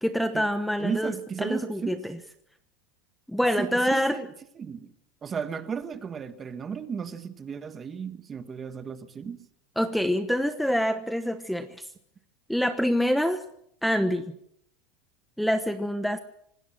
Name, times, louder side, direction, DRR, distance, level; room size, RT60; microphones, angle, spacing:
voice 1, 0.0-1.1 1.4-2.2 3.3-4.2 9.8-11.9 12.5-13.4 13.8-14.3 15.4-16.2, equal, ahead, 1.1 m, -26 dB
voice 2, 0.8-2.0 3.6-4.9 5.2-9.4, right 6 dB, 20° right, 1.4 m, -34 dB
26.5 x 19.5 x 6.2 m
supercardioid pair, 155°, 0 cm